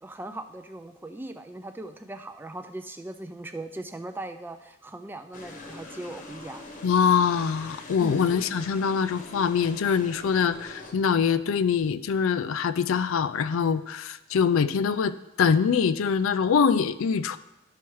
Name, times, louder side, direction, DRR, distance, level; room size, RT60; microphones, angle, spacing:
voice 1, 0.0-6.6 8.0-8.4, right 1 dB, 10° right, 7 dB, 0.3 m, -39 dB
sound 1, 5.3-10.9, left 2 dB, 40° left, 0.9 m, -43 dB
voice 2, 6.8-17.4, left 6 dB, 80° left, 14 dB, 0.4 m, -24 dB
12.0 x 5.7 x 3.1 m, 0.94 s
head